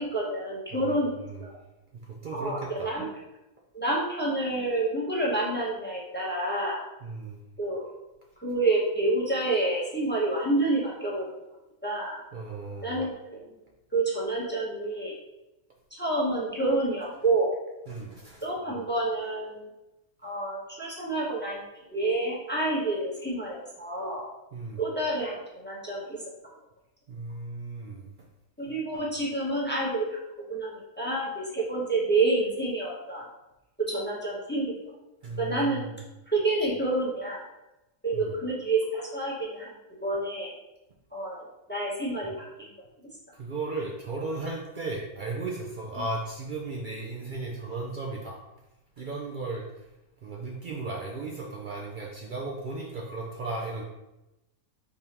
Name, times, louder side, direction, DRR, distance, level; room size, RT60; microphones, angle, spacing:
voice 1, 0.0-1.5 2.3-3.1 3.7-6.8 7.6-7.9 8.4-11.3 11.8-12.2 12.8-13.4 13.9-15.2 15.9-17.5 18.4-19.7 20.2-21.6 21.9-24.2 24.8-26.2 28.6-30.2 30.5-33.3 33.8-34.7 35.4-35.8 36.3-37.4 38.0-39.7 40.0-40.5 41.1-41.4 41.7-42.7, right 2 dB, 10° left, -5 dB, 0.7 m, -28 dB
voice 2, 0.7-1.5 2.1-2.9 7.0-7.4 12.3-13.0 17.9-18.4 24.5-24.8 27.1-28.1 28.7-28.8 35.2-36.0 38.1-38.3 43.3-48.4 49.0-49.8 50.2-53.8, right 3 dB, 90° right, -2 dB, 0.4 m, -36 dB
5.2 x 3.5 x 2.9 m, 0.96 s
omnidirectional pair, 1.6 m